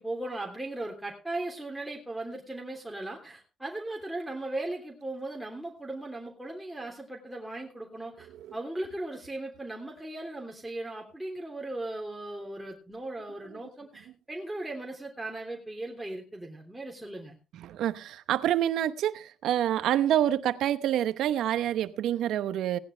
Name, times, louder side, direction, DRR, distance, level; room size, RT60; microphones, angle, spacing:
voice 1, 0.0-17.4, right 2 dB, 5° right, 3.2 m, -37 dB
voice 2, 17.5-22.8, right 11 dB, 80° right, 0.9 m, -27 dB
18.0 x 10.5 x 3.3 m
cardioid pair, 90°, 0 cm